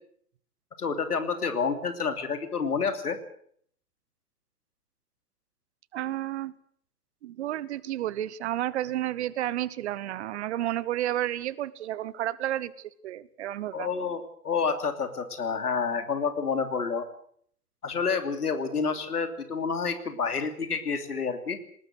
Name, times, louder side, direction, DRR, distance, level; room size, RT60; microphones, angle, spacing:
voice 1, 0.8-3.2 13.7-17.0 17.8-21.6, left 5 dB, 70° left, 9 dB, 3.0 m, -29 dB
voice 2, 5.9-6.5 7.2-13.9, right 13 dB, 45° right, 20 dB, 1.1 m, -31 dB
20.5 x 19.0 x 7.9 m, 0.63 s
figure-of-eight pair, 110°, 47 cm